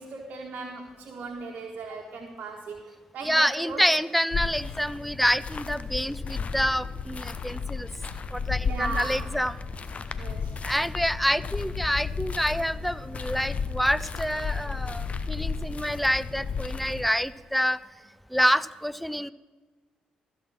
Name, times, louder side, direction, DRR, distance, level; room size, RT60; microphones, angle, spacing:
voice 1, 0.0-3.8 8.6-9.3 10.1-10.6, right 3 dB, 55° right, 0 dB, 1.4 m, -38 dB
voice 2, 3.2-7.9 8.3-9.5 10.6-17.8 18.3-19.3, equal, ahead, 17 dB, 0.4 m, -27 dB
sound 1, 4.3-17.1, left 5 dB, 40° left, 0.8 m, -33 dB
14.0 x 6.2 x 6.2 m, 1.4 s
hypercardioid pair, 45°, 3 cm